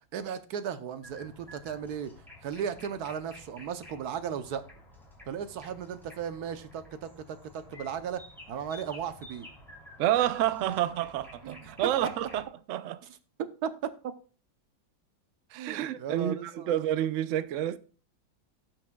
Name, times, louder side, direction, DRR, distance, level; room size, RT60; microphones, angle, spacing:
voice 1, 0.1-2.1 2.4-4.6 5.3-8.2 8.5-9.5 11.4-11.7 13.0-13.2 13.6-13.9 15.5-16.7, right 8 dB, 65° right, 1.2 m, -36 dB
sound 1, 1.0-12.5, left 1 dB, ahead, 2.7 m, -51 dB
voice 2, 10.0-12.4 12.7-13.0 15.5-17.8, right 12 dB, 80° right, 0.6 m, -29 dB
17.0 x 6.0 x 2.3 m
omnidirectional pair, 2.0 m